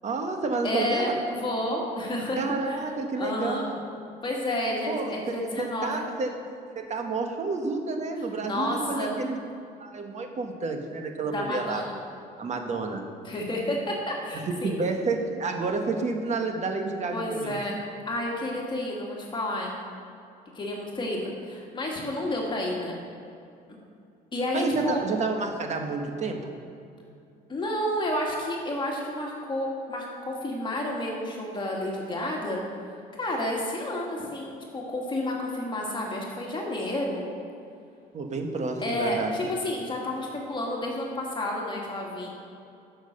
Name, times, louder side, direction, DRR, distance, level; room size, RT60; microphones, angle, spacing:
voice 1, 0.0-1.1 2.4-3.8 4.9-6.3 6.7-9.4 9.8-11.8 12.4-13.0 14.6-17.8 24.5-26.5 38.1-39.3, right 3 dB, 45° right, 4 dB, 1.4 m, -30 dB
voice 2, 0.6-2.4 2.7-2.8 3.2-3.7 4.2-6.0 8.4-9.1 11.2-11.9 13.2-14.7 17.1-19.8 20.5-23.0 24.3-25.0 27.5-32.6 33.2-37.3 38.8-42.3, left 1 dB, 30° left, -2 dB, 2.1 m, -30 dB
10.0 x 6.4 x 6.6 m, 2.6 s
cardioid pair, 110°, 17 cm